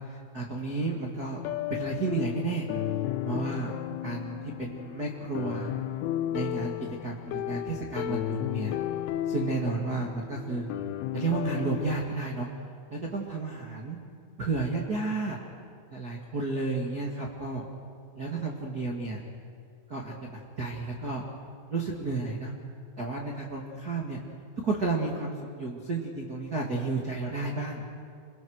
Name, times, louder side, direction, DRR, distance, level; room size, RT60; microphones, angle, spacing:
voice 1, 0.1-1.4 1.7-2.7 3.2-3.7 4.0-5.7 6.3-6.7 7.0-8.8 9.3-10.7 11.1-12.5 12.9-14.0 14.4-15.4 15.9-17.7 18.1-19.2 19.9-21.2 21.7-22.5 23.0-24.2 24.6-27.8, right 3 dB, 45° right, -3 dB, 1.1 m, -32 dB
sound 1, 1.4-12.1, left 13 dB, 85° left, 3.3 m, -34 dB
29.0 x 22.5 x 6.5 m, 2.3 s
omnidirectional pair, 5.4 m